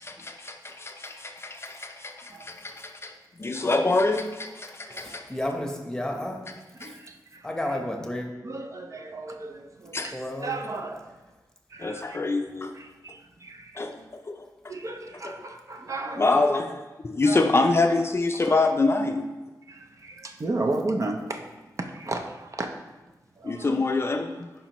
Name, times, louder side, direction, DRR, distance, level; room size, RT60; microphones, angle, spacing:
voice 1, 0.0-3.1 3.4-5.2 6.8-6.9 9.9-10.1 11.8-12.7 13.8-14.0 14.3-14.5 16.2-19.3 23.4-24.5, left 3 dB, 35° left, 4 dB, 0.5 m, -25 dB
voice 2, 3.6-3.9 4.9-5.2 6.7-7.5 8.4-10.2 10.4-11.1 11.7-12.2 12.7-13.9 14.7-16.4 17.2-17.5 18.5-18.7 19.7-21.4 21.8-22.7 23.4-23.8, right 2 dB, 45° right, 4 dB, 0.6 m, -34 dB
voice 3, 5.0-6.4 6.8-6.9 7.4-8.3 10.1-10.5, left 1 dB, 10° left, 2 dB, 1.0 m, -31 dB
10.0 x 5.0 x 3.0 m, 1.1 s
wide cardioid pair, 115°, 7 cm